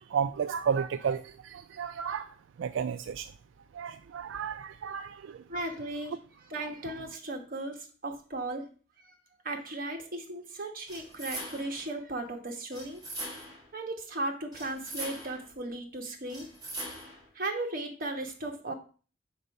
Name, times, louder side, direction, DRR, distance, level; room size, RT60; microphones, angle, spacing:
voice 1, 0.0-3.3 3.7-5.4 6.6-6.7, right 7 dB, 85° right, 0.3 m, -33 dB
voice 2, 5.5-6.2 6.5-8.6 9.0-9.1 9.4-13.0 13.7-16.5 17.3-18.7, right 2 dB, 50° right, 1.3 m, -36 dB
sound 1, 10.9-11.8 12.7-13.7 14.5-15.5 16.3-17.3, right 1 dB, 20° right, 3.6 m, -41 dB
5.5 x 4.7 x 5.2 m
head